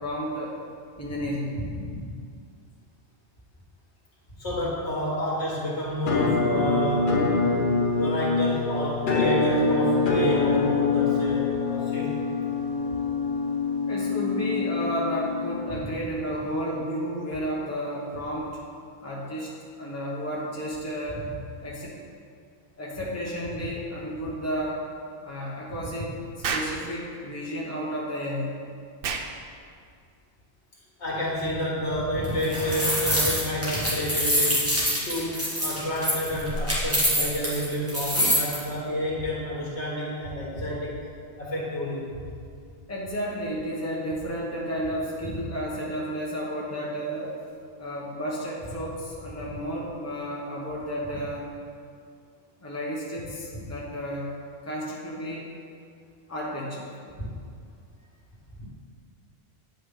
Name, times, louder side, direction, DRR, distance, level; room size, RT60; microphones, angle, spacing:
voice 1, 0.0-0.6 1.0-1.6 13.9-18.5 19.0-19.5 19.8-21.2 21.6-22.0 22.8-24.8 25.2-26.2 26.5-28.6 42.9-47.4 47.8-51.5 52.6-54.3 54.6-55.5 56.3-56.9, equal, 15° left, -5 dB, 1.1 m, -32 dB
voice 2, 1.6-2.1 4.4-12.1 25.7-25.8 31.0-34.7 35.0-41.0 41.4-42.3 57.2-57.3 58.6-58.7, equal, 75° left, -6 dB, 2.3 m, -30 dB
Musical instrument, 6.1-15.9, left 3 dB, 50° left, 0.9 m, -25 dB
Explosion, 26.4-26.8 29.0-29.3, right 5 dB, 60° right, 0.7 m, -29 dB
sound 1, 32.2-38.6, equal, 10° right, 1.8 m, -25 dB
9.5 x 5.5 x 3.8 m, 2.3 s
omnidirectional pair, 1.2 m